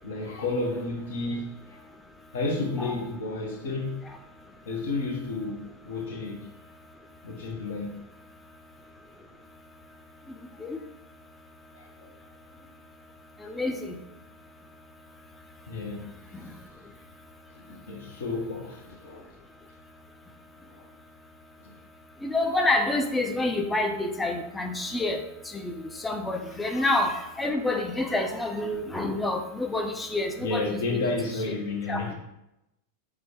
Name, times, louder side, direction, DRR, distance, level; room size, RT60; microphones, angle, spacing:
voice 1, 0.0-1.8 2.3-4.0 4.7-6.4 7.2-7.9 11.7-12.1 12.6-12.7 15.7-16.2 17.5-19.3 20.7-20.9 21.6-21.8 30.4-32.1, left 3 dB, 60° left, 0.7 m, -32 dB
voice 2, 13.4-14.0 16.3-16.5 22.2-25.2 25.5-25.7 26.0-31.1 31.9-32.0, left 2 dB, 10° left, 0.4 m, -28 dB
3.2 x 2.2 x 3.4 m
figure-of-eight pair, 90°, 0 cm